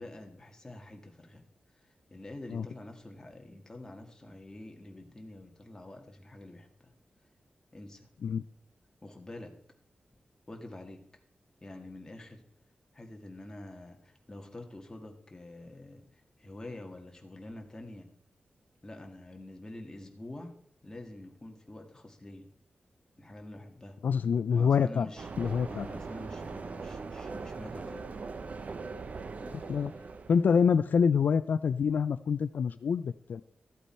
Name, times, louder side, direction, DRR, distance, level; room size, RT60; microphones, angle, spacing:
voice 1, 0.0-1.4 2.1-6.9 7.7-8.1 9.0-9.5 10.5-11.0 11.6-12.4 12.9-16.0 16.4-18.1 18.8-20.5 20.8-22.5 23.2-24.0 24.5-28.1 29.4-29.9, left 1 dB, 20° left, 3 dB, 1.7 m, -46 dB
voice 2, 24.0-25.1 25.4-25.9 29.7-29.9 30.3-33.4, left 6 dB, 75° left, 13 dB, 0.4 m, -26 dB
sound 1, 25.2-30.7, right 4 dB, 50° right, 0.6 m, -41 dB
13.5 x 8.4 x 4.3 m, 0.70 s
wide cardioid pair, 150°, 3 cm